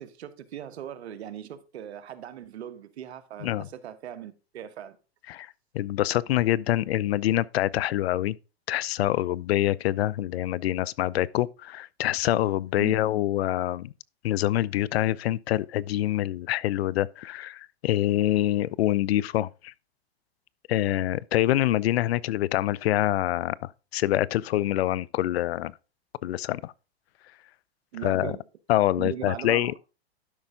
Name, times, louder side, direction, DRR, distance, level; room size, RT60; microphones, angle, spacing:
voice 1, 0.0-5.0 12.8-13.0 27.9-28.4 29.0-29.8, right 10 dB, 80° right, 1.2 m, -39 dB
voice 2, 5.3-8.4 8.7-13.9 14.2-19.7 20.7-25.7 26.2-26.7 28.0-28.3 28.7-29.7, left 14 dB, 75° left, 0.6 m, -25 dB
12.0 x 5.3 x 3.7 m
hypercardioid pair, 130°, 32 cm